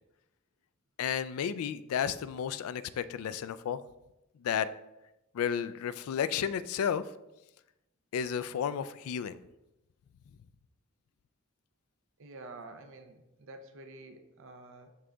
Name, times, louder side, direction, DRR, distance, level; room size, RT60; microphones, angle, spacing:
voice 1, 1.0-3.8 4.4-4.7 5.3-7.0 8.1-9.4, left 8 dB, 80° left, 14 dB, 0.3 m, -32 dB
voice 2, 12.2-15.0, right 2 dB, 60° right, 7 dB, 0.6 m, -49 dB
11.0 x 3.8 x 2.3 m, 0.92 s
head